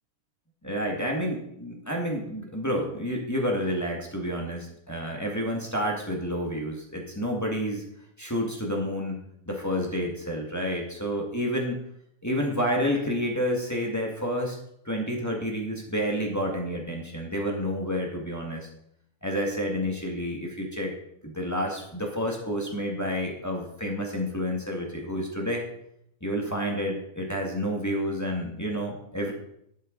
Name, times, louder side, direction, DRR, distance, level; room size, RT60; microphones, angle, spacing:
voice 1, 0.6-7.8 8.2-9.2 9.4-11.8 12.2-14.6 14.8-18.7 19.2-20.9 21.2-25.6 26.2-29.3, equal, 10° left, -1 dB, 1.1 m, -29 dB
11.0 x 9.8 x 3.9 m, 0.75 s
omnidirectional pair, 3.4 m